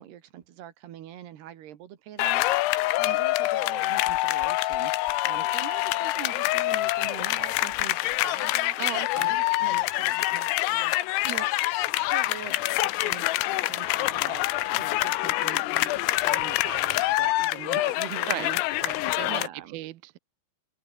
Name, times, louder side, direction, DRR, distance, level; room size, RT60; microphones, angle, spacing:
voice 1, 0.0-2.5 3.0-8.8 9.1-14.5 14.7-18.6 19.3-19.8, right 11 dB, 60° right, 3.6 m, -43 dB
sound 1, 2.2-19.5, left 18 dB, 85° left, 3.6 m, -26 dB
voice 2, 8.8-9.4 18.3-18.5 18.8-20.2, right 18 dB, 85° right, 2.1 m, -36 dB
open air
omnidirectional pair, 5.8 m